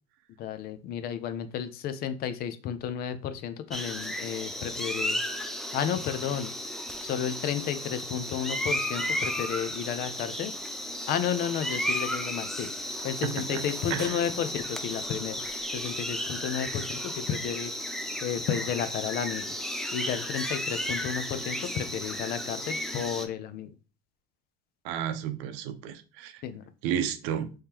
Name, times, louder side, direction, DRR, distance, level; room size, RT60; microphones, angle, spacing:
voice 1, 0.4-5.2 5.7-6.5 7.0-10.5 11.1-12.7 13.0-15.4 15.7-17.7 18.2-19.6 19.9-23.7 26.4-26.6, left 9 dB, 55° left, 0.5 m, -32 dB
sound 1, 3.7-23.3, equal, ahead, 0.5 m, -34 dB
voice 2, 13.2-13.6 13.9-14.2 24.8-26.4 26.8-27.5, right 9 dB, 85° right, 0.6 m, -32 dB
3.6 x 3.2 x 2.8 m
cardioid pair, 110°, 18 cm